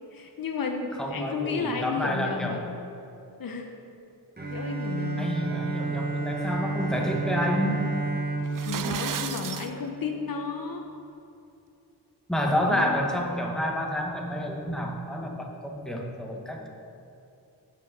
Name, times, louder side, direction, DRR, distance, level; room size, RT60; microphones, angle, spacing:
voice 1, 0.1-2.7 3.4-3.7 4.5-5.3 8.6-10.9 12.7-13.2, left 5 dB, 55° left, 4 dB, 0.7 m, -33 dB
voice 2, 1.0-2.7 5.2-7.9 12.3-16.7, equal, ahead, 0 dB, 1.1 m, -29 dB
Bowed string instrument, 4.4-10.2, right 3 dB, 25° right, 1.0 m, -31 dB
sound 1, 8.4-9.7, right 8 dB, 55° right, 0.5 m, -33 dB
7.7 x 5.3 x 5.2 m, 2.7 s
cardioid pair, 55°, 40 cm